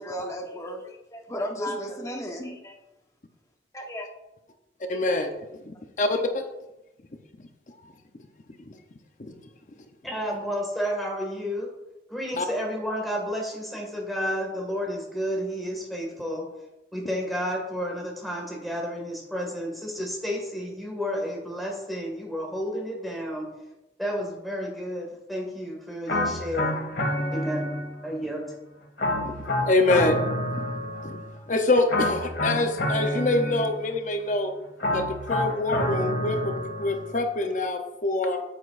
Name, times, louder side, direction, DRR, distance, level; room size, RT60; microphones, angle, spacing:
voice 1, 0.0-2.7 3.7-4.0 5.0-5.1, equal, 15° left, 0 dB, 1.1 m, -34 dB
voice 2, 4.9-5.3 5.7-6.4 8.7-8.8 9.2-9.3 12.3-12.5 29.2-29.3 29.6-30.3 31.0-31.2 31.5-34.5 34.9-35.0 35.3-36.5 36.8-38.4, left 2 dB, 45° left, 5 dB, 0.7 m, -25 dB
voice 3, 10.0-11.7 12.1-16.5 16.9-23.5 24.0-26.8 27.3-27.7 28.0-28.4, equal, ahead, -1 dB, 1.9 m, -31 dB
sound 1, 26.1-28.2 29.0-31.4 31.9-34.0 34.8-37.2, left 1 dB, 85° left, 2.0 m, -28 dB
8.8 x 8.3 x 2.6 m, 0.94 s
head